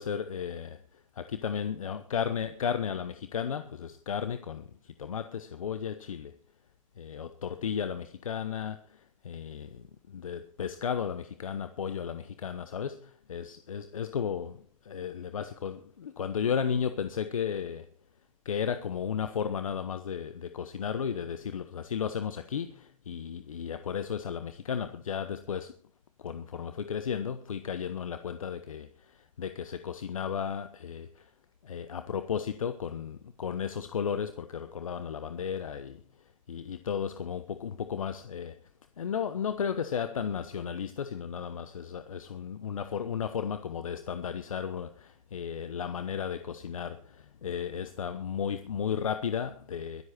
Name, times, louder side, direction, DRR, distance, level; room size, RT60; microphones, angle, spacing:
voice 1, 0.0-6.3 7.0-17.9 18.4-25.8 26.2-31.3 31.6-38.6 39.0-50.0, left 7 dB, 90° left, 1.0 m, -34 dB
23.0 x 8.1 x 4.4 m
hypercardioid pair, 100°, 17 cm